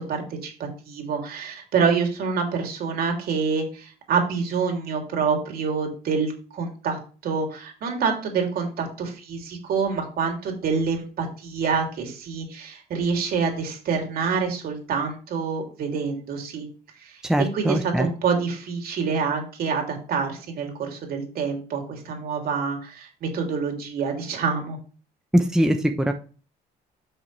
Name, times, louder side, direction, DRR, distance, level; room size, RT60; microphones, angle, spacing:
voice 1, 0.0-16.7 17.0-17.2 17.5-24.8, right 5 dB, 60° right, 2 dB, 3.2 m, -27 dB
voice 2, 17.3-18.1 25.3-26.1, right 1 dB, 5° right, 5 dB, 0.9 m, -21 dB
10.5 x 6.1 x 3.4 m, 0.37 s
cardioid pair, 110°, 17 cm